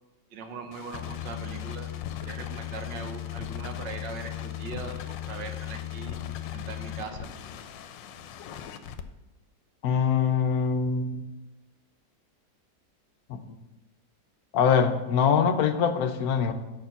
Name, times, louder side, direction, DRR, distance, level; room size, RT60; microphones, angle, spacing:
voice 1, 0.3-1.9 2.2-6.2 6.5-7.3, right 4 dB, 75° right, 5 dB, 1.5 m, -40 dB
sound 1, 0.7-9.0, left 12 dB, 85° left, 1.3 m, -37 dB
voice 2, 9.8-11.3 13.3-13.4 14.5-16.5, left 6 dB, 65° left, 8 dB, 1.0 m, -23 dB
6.8 x 6.0 x 5.7 m, 1.0 s
omnidirectional pair, 2.0 m